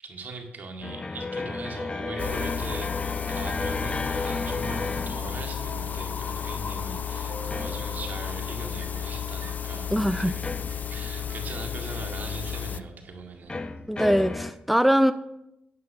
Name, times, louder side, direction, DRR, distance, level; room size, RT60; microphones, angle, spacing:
voice 1, 0.0-13.6, right 3 dB, 60° right, 3 dB, 2.0 m, -40 dB
sound 1, 0.8-5.9 7.5-8.2 10.4-11.2 13.5-14.5, left 3 dB, 30° left, 0.9 m, -33 dB
sound 2, 2.2-12.8, left 8 dB, 55° left, 0.5 m, -33 dB
Subway metro underground, 3.7-14.4, right 3 dB, 85° right, 1.6 m, -48 dB
voice 2, 9.9-10.4 13.9-15.1, equal, ahead, 11 dB, 0.5 m, -22 dB
9.4 x 8.7 x 5.7 m, 0.86 s
cardioid pair, 65°, 3 cm